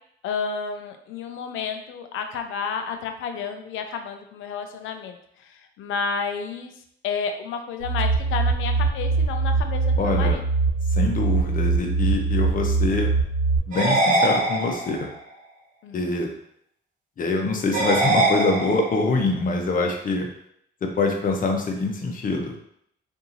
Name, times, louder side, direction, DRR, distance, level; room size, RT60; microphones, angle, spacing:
voice 1, 0.2-5.2 5.5-6.7 7.0-10.4 15.8-16.2, left 6 dB, 85° left, 6 dB, 0.5 m, -31 dB
sound 1, 7.8-13.6, right 4 dB, 65° right, 0.9 m, -22 dB
voice 2, 10.0-10.4 10.9-13.1 13.7-15.1 15.9-16.3 17.2-20.3 20.8-22.6, left 3 dB, 45° left, 2 dB, 0.8 m, -24 dB
sound 2, 13.7-15.1 17.7-19.1, right 2 dB, 40° right, 1.0 m, -22 dB
2.8 x 2.7 x 3.8 m, 0.71 s
cardioid pair, 90°, 20 cm